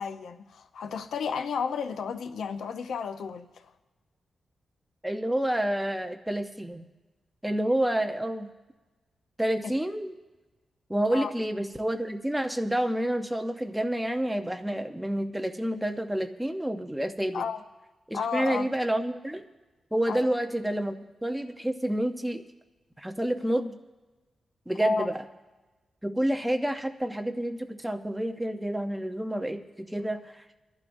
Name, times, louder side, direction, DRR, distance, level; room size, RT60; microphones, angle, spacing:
voice 1, 0.0-3.7 11.1-11.3 17.3-17.6 18.1-18.7 20.1-20.3 24.8-25.1, left 6 dB, 85° left, 0.7 m, -32 dB
voice 2, 5.0-6.9 7.4-8.5 9.4-10.1 10.9-17.4 18.1-19.4 19.9-22.4 23.0-23.8 24.7-25.2 26.0-30.4, right 1 dB, 5° right, 0.7 m, -29 dB
24.0 x 11.5 x 2.6 m
wide cardioid pair, 145°, 0 cm